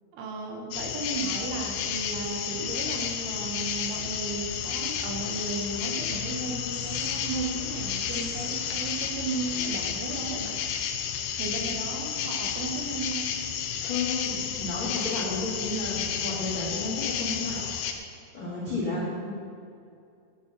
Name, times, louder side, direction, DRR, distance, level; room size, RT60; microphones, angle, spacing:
voice 1, 0.1-10.6 11.4-13.3 18.8-19.1, right 3 dB, 75° right, 2 dB, 3.5 m, -35 dB
sound 1, 0.7-17.9, left 8 dB, 85° left, 2.3 m, -31 dB
voice 2, 13.8-17.6 18.3-19.4, left 2 dB, 35° left, -7 dB, 2.0 m, -32 dB
11.0 x 8.6 x 5.9 m, 2.4 s
omnidirectional pair, 5.6 m